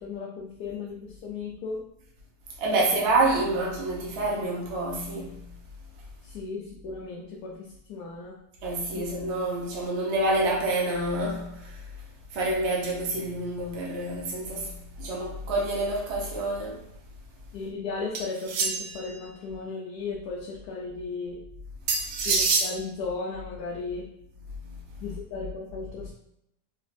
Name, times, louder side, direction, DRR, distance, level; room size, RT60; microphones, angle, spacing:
voice 1, 0.0-1.8 2.7-2.8 6.2-8.4 8.9-9.1 17.5-21.4 22.2-24.1 25.0-26.1, left 4 dB, 75° left, 1.1 m, -35 dB
voice 2, 2.6-5.4 8.6-11.7 12.3-16.8, right 2 dB, 50° right, 0.9 m, -27 dB
sound 1, 18.1-19.1 21.9-22.7, right 4 dB, 80° right, 1.2 m, -25 dB
4.0 x 2.4 x 2.5 m
omnidirectional pair, 1.8 m